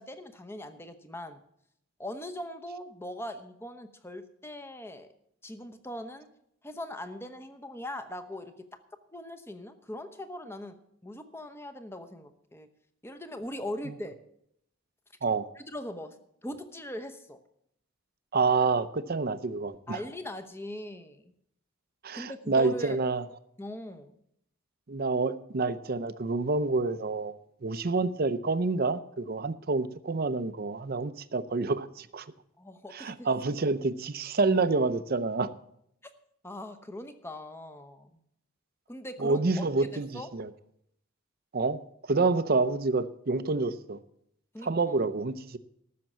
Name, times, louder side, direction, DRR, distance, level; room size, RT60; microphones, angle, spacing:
voice 1, 0.0-1.4 2.0-5.1 5.4-6.3 6.6-8.7 9.1-10.8 11.0-12.7 13.0-14.2 15.7-16.2 16.4-17.4 19.9-21.3 22.1-23.0 23.6-24.1 32.6-33.3 36.4-38.2 38.9-39.4 39.8-40.3 44.5-45.0, left 1 dB, 10° left, 8 dB, 0.9 m, -40 dB
voice 2, 18.3-20.0 22.0-23.3 24.9-32.3 32.9-35.5 39.2-40.5 41.5-41.8 42.1-44.0 44.6-45.6, right 3 dB, 45° right, 13 dB, 0.6 m, -28 dB
14.0 x 6.7 x 7.4 m, 0.74 s
head